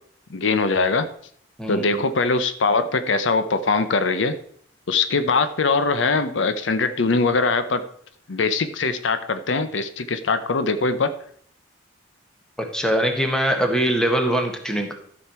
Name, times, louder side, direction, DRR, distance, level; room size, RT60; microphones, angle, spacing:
voice 1, 0.3-1.1 1.7-4.4 4.9-7.8 8.3-11.1, left 4 dB, 70° left, 11 dB, 0.7 m, -22 dB
voice 2, 1.6-2.0 12.6-14.9, right 1 dB, 5° left, 4 dB, 1.4 m, -22 dB
13.0 x 6.4 x 4.3 m, 0.63 s
head